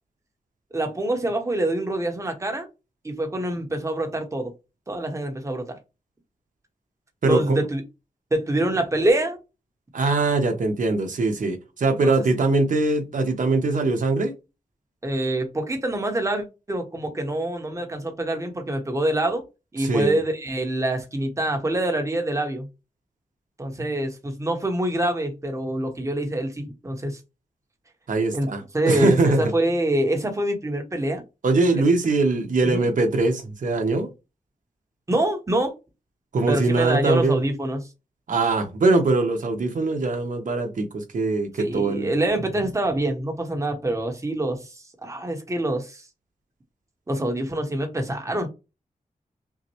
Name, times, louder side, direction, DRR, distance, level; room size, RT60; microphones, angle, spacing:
voice 1, 0.7-2.7 3.0-4.5 4.9-5.8 7.3-7.8 8.3-9.4 12.0-12.1 15.0-19.4 19.7-22.7 23.6-27.2 28.3-28.5 28.7-31.2 32.6-32.9 35.1-35.7 36.5-37.9 41.6-46.1 47.1-48.5, right 1 dB, 20° right, 1.0 m, -25 dB
voice 2, 7.2-7.6 9.9-14.3 19.8-20.2 28.1-29.5 31.4-34.1 36.3-37.4 38.3-42.1, right 3 dB, 65° right, 1.1 m, -22 dB
5.8 x 2.1 x 3.0 m
wide cardioid pair, 110°, 14 cm